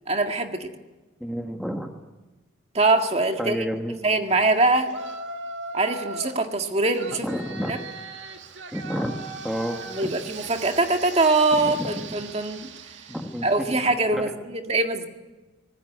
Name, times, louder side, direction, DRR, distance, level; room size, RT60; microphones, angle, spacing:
voice 1, 0.1-0.7 2.7-3.7 4.0-4.9 5.7-7.3 7.6-7.8 9.9-12.7 13.4-15.1, right 2 dB, 35° right, 5 dB, 1.9 m, -23 dB
voice 2, 1.2-1.9 3.4-4.2 7.2-7.8 8.7-9.1 9.4-10.1 11.5-12.1 13.1-14.3, equal, ahead, 4 dB, 1.4 m, -31 dB
Yell, 4.8-6.4 6.9-13.7, right 3 dB, 80° right, 1.9 m, -38 dB
25.5 x 19.5 x 9.5 m, 1.2 s
head